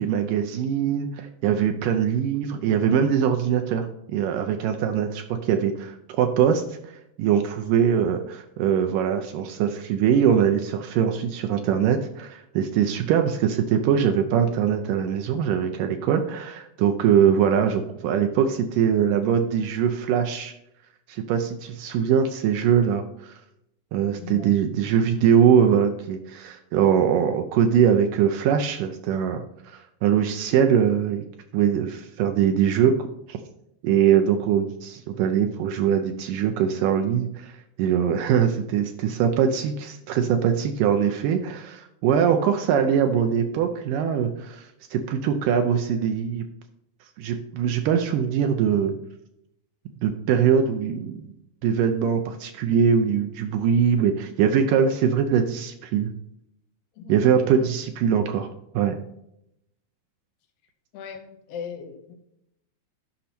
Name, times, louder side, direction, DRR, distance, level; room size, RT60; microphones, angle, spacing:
voice 1, 0.0-6.6 7.2-20.5 21.1-23.3 23.9-31.2 31.5-33.4 33.8-37.5 37.8-46.5 47.2-48.9 50.0-51.3 51.6-56.1 57.1-58.5 58.8-59.0, right 8 dB, 80° right, 6 dB, 2.2 m, -22 dB
voice 2, 24.2-24.6 56.9-57.2 57.6-57.7 60.9-62.2, left 6 dB, 80° left, 4 dB, 2.8 m, -38 dB
12.0 x 5.5 x 4.2 m, 0.80 s
omnidirectional pair, 4.0 m